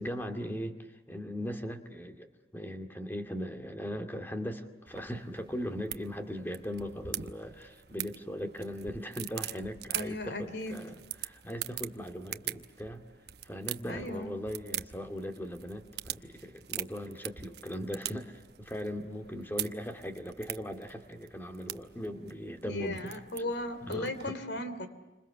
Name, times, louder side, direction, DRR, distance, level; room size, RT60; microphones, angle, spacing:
voice 1, 0.0-13.0 13.4-23.2 23.8-24.4, equal, 10° left, 5 dB, 2.3 m, -39 dB
sound 1, 4.9-24.3, right 12 dB, 65° right, 0.9 m, -43 dB
voice 2, 9.9-10.8 13.9-14.3 22.6-24.9, left 1 dB, 75° left, 10 dB, 3.1 m, -36 dB
29.5 x 26.5 x 7.1 m, 1.1 s
head